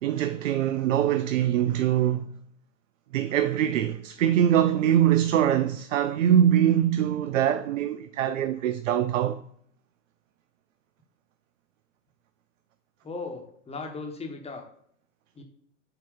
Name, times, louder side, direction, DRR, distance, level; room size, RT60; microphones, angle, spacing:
voice 1, 0.0-2.3 3.1-9.4, right 10 dB, 85° right, 0.5 m, -23 dB
voice 2, 13.0-14.6 15.3-15.4, left 3 dB, 15° left, 1.2 m, -37 dB
7.8 x 2.9 x 4.8 m
hypercardioid pair, 100°, 37 cm